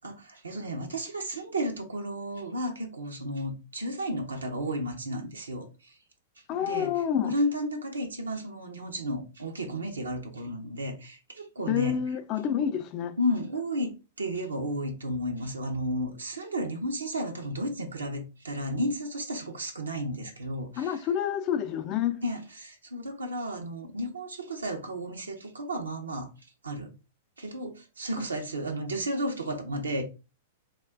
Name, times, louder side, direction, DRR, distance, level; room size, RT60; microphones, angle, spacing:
voice 1, 0.0-6.0 6.6-6.9 7.2-12.0 13.2-21.0 22.2-26.3 26.6-26.9 27.4-30.0, equal, 90° right, 0.6 m, -33 dB
voice 2, 6.5-7.3 11.7-13.2 20.8-22.2, left 9 dB, 40° left, 0.5 m, -28 dB
2.4 x 2.2 x 3.4 m
hypercardioid pair, 105°, 0 cm